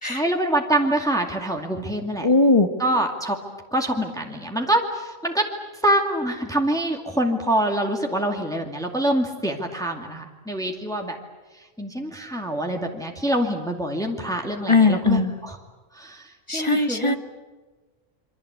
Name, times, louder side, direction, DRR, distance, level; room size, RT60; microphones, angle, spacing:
voice 1, 0.0-2.3 2.8-3.4 3.7-5.4 5.8-11.2 11.8-15.6 16.0-16.2 16.5-17.2, right 1 dB, 5° left, 2 dB, 2.3 m, -25 dB
voice 2, 2.2-2.7 14.7-15.4 16.5-17.2, left 3 dB, 25° left, 8 dB, 1.4 m, -19 dB
27.5 x 24.5 x 8.3 m, 1.3 s
omnidirectional pair, 1.3 m